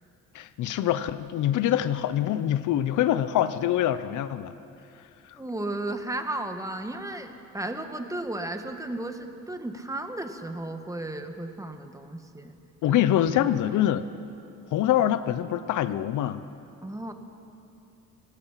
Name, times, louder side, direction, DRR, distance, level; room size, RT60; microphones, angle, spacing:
voice 1, 0.3-4.5 5.3-5.4 12.8-14.1 14.7-16.4, left 11 dB, 80° left, 14 dB, 0.9 m, -25 dB
voice 2, 5.4-12.6 12.9-13.0 13.4-13.5 16.8-17.1, right 1 dB, 10° right, 6 dB, 1.7 m, -34 dB
29.0 x 17.5 x 5.8 m, 2.7 s
cardioid pair, 90°, 30 cm